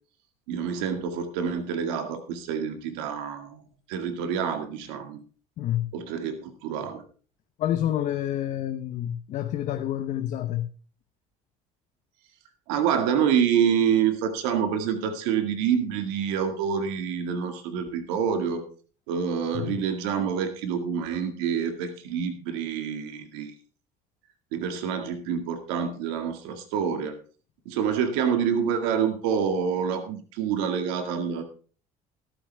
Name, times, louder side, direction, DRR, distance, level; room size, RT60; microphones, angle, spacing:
voice 1, 0.5-3.6 3.9-5.2 5.9-7.0 12.7-18.6 19.1-23.5 24.5-27.1 27.7-31.4, right 7 dB, 90° right, 2.0 m, -27 dB
voice 2, 5.6-5.9 7.6-10.7 19.5-19.8, left 11 dB, 60° left, 0.9 m, -28 dB
13.5 x 13.0 x 3.4 m
supercardioid pair, 95°, 14 cm